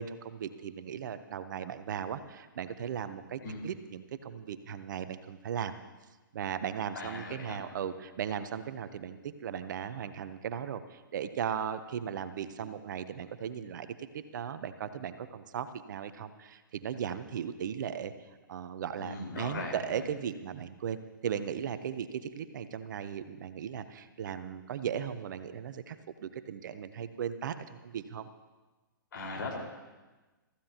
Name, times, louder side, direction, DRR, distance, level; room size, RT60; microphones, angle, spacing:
voice 1, 0.0-5.7 6.3-18.1 18.5-26.0 26.2-28.3, right 8 dB, 60° right, 12 dB, 0.9 m, -37 dB
voice 2, 6.9-7.6 19.0-20.0 29.1-29.6, left 3 dB, 65° left, -1 dB, 4.8 m, -39 dB
23.5 x 14.5 x 2.9 m, 1.2 s
hypercardioid pair, 125°, 12 cm